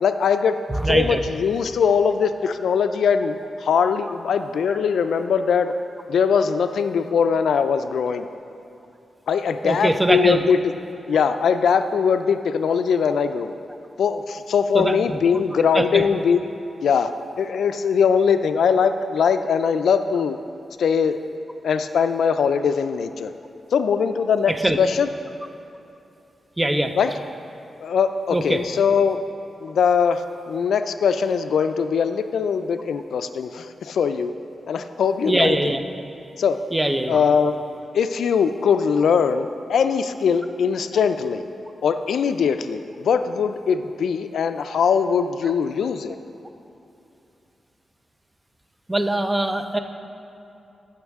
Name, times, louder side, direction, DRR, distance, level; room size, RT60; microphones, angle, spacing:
voice 1, 0.0-0.6 0.9-5.7 6.1-8.3 9.3-10.6 11.1-13.5 14.0-16.4 16.8-17.1 17.4-20.4 20.8-21.2 21.6-23.3 23.7-25.1 27.0-27.1 27.8-29.2 29.6-34.3 34.7-35.6 36.4-36.6 37.1-37.6 37.9-41.5 41.8-46.2, left 6 dB, 85° left, 9 dB, 0.3 m, -21 dB
voice 2, 0.7-1.2 9.6-10.4 14.7-15.2 15.7-16.0 24.5-24.8 26.6-26.9 28.3-28.6 35.2-35.8 36.7-37.2 48.9-49.8, right 1 dB, 15° right, 7 dB, 0.6 m, -22 dB
15.0 x 6.3 x 3.5 m, 2.8 s
cardioid pair, 95°, 0 cm